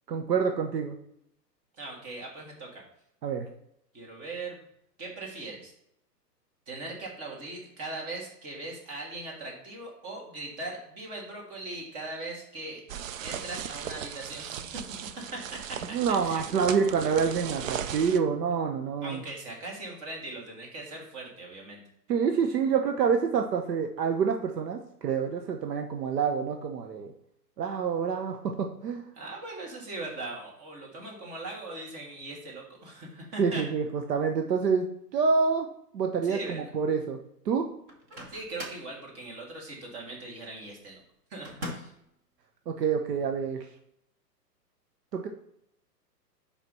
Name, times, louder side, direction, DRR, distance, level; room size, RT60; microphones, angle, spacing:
voice 1, 0.1-1.0 3.2-3.5 15.9-19.2 22.1-27.1 27.6-29.0 33.4-34.9 35.1-35.7 35.9-37.2 37.5-37.7 42.7-43.6 45.1-45.3, right 6 dB, 75° right, 4 dB, 0.9 m, -27 dB
voice 2, 1.8-2.7 3.9-4.6 5.0-5.7 6.7-12.8 13.2-14.8 15.3-15.4 15.9-16.0 16.2-16.7 17.9-18.2 19.0-21.8 29.1-33.6 36.2-36.7 38.3-41.0 41.3-41.9, right 2 dB, 30° right, -1 dB, 2.4 m, -40 dB
sound 1, 12.9-18.2, right 9 dB, 55° right, 0.6 m, -37 dB
Microwave oven, 37.9-38.9 41.4-42.1, equal, 10° right, 0.4 m, -40 dB
5.3 x 5.1 x 5.4 m, 0.75 s
hypercardioid pair, 130°, 49 cm